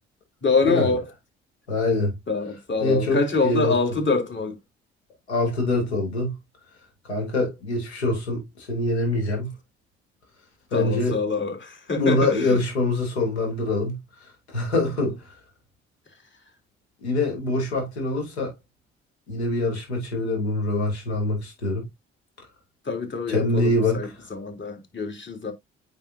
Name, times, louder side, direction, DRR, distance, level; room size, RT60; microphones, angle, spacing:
voice 1, 0.4-1.0 2.3-4.6 10.7-12.6 22.8-25.5, left 4 dB, 35° left, 3.3 m, -25 dB
voice 2, 1.7-2.1 2.8-3.7 5.3-6.3 7.1-9.5 10.7-11.2 11.9-14.0 14.5-15.3 17.0-18.5 19.3-21.8 23.3-24.1, left 2 dB, 90° left, 3.1 m, -24 dB
8.9 x 5.3 x 2.7 m
hypercardioid pair, 45°, 32 cm